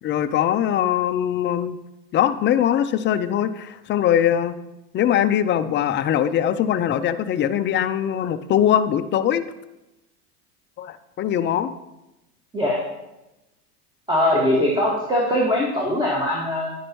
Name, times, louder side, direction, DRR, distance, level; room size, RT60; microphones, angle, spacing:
voice 1, 0.0-1.8 2.1-4.5 4.9-9.4 10.8-11.7, left 10 dB, 25° left, 10 dB, 0.5 m, -21 dB
voice 2, 14.1-16.7, left 1 dB, 10° right, -4 dB, 2.0 m, -21 dB
10.0 x 9.9 x 3.1 m, 0.96 s
hypercardioid pair, 85°, 47 cm